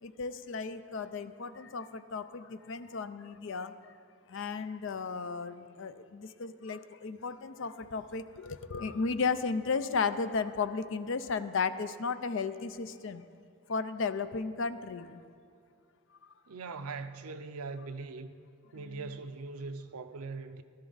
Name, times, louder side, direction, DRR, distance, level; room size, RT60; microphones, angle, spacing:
voice 1, 0.0-4.0 4.3-13.2 13.7-15.2 16.2-16.3 18.8-19.0, left 4 dB, 55° left, 0.4 m, -34 dB
voice 2, 16.5-18.3 18.7-20.6, right 4 dB, 90° right, 0.6 m, -41 dB
15.0 x 12.5 x 4.0 m
head